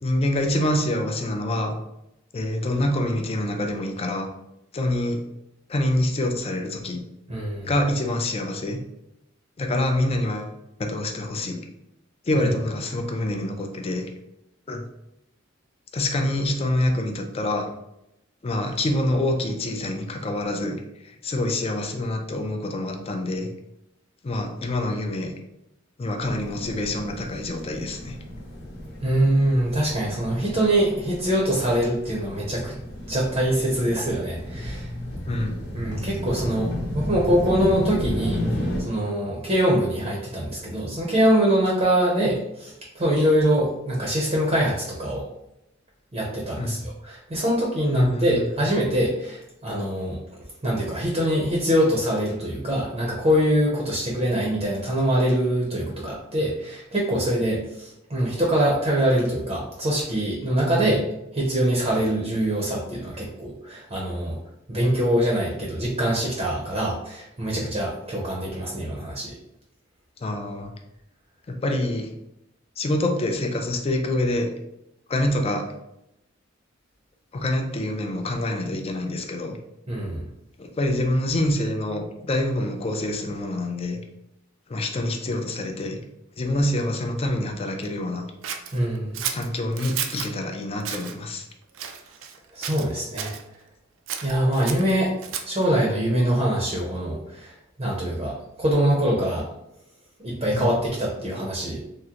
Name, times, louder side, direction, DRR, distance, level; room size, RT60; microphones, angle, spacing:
voice 1, 0.0-1.7 2.3-4.3 4.7-5.2 5.7-7.0 7.6-8.8 9.6-10.5 10.8-11.6 12.3-14.1 14.7-14.8 15.9-17.7 18.4-20.8 21.0-23.5 24.2-25.3 26.0-28.2 35.3-35.6 46.6-46.8 47.9-48.5 60.6-61.0 70.2-70.7 71.5-72.1 72.8-74.5 75.1-75.7 77.3-79.6 80.6-84.0 84.7-86.0 86.4-88.2 89.3-91.4 100.5-100.7, left 1 dB, 30° left, 4 dB, 0.4 m, -26 dB
voice 2, 7.3-7.7 12.3-12.5 29.0-32.7 33.1-34.9 35.7-38.4 38.8-45.3 46.1-50.2 50.6-61.0 61.3-64.4 64.7-69.3 79.9-80.2 88.7-89.2 92.5-93.3 94.2-95.1 95.4-99.4 100.2-101.8, equal, 30° right, -3 dB, 0.6 m, -24 dB
sound 1, 26.2-38.8, equal, 60° left, 0.8 m, -33 dB
Scissors, 88.4-90.3 90.8-91.1 91.7-92.4 92.6-93.4 94.1-95.6, right 8 dB, 70° right, 0.4 m, -32 dB
3.6 x 2.1 x 2.8 m, 0.85 s
head